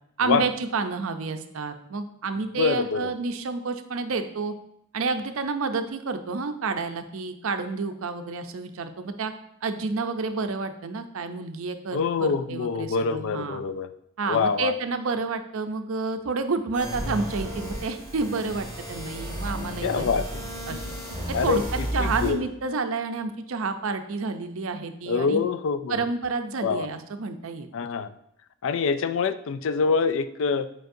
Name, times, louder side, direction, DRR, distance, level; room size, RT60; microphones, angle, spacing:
voice 1, 0.2-4.5 4.9-9.3 9.6-13.6 14.2-20.2 20.7-20.8 21.4-25.4 25.9-27.7, right 4 dB, 65° right, 8 dB, 0.5 m, -29 dB
voice 2, 2.6-3.1 11.9-13.9 14.3-14.7 19.8-20.3 21.3-21.6 22.0-22.4 25.1-26.1 26.6-26.9 27.7-28.1 28.6-30.7, left 5 dB, 60° left, 12 dB, 0.3 m, -25 dB
sound 1, 16.7-22.3, equal, 10° left, 1.8 m, -33 dB
7.8 x 4.6 x 2.6 m, 0.75 s
head